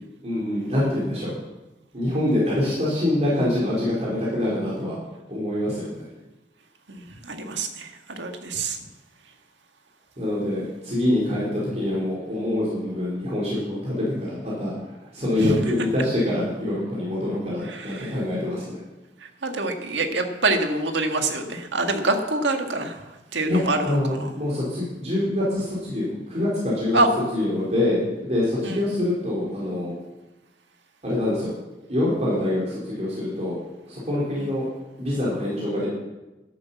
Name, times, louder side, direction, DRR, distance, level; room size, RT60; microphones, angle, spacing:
voice 1, 0.2-1.3 1.9-5.0 5.3-6.1 10.2-14.7 15.1-18.8 23.5-27.0 27.3-29.9 31.0-31.5 31.9-33.5 33.9-34.7 35.0-35.9, left 1 dB, 40° right, -6 dB, 4.1 m, -25 dB
voice 2, 6.9-8.8 15.4-15.6 17.7-18.1 19.4-23.0 23.3-24.3 26.9-27.1 28.6-28.8 34.4-34.5, right 2 dB, 75° right, 5 dB, 1.7 m, -25 dB
11.5 x 11.0 x 7.4 m, 1.1 s
head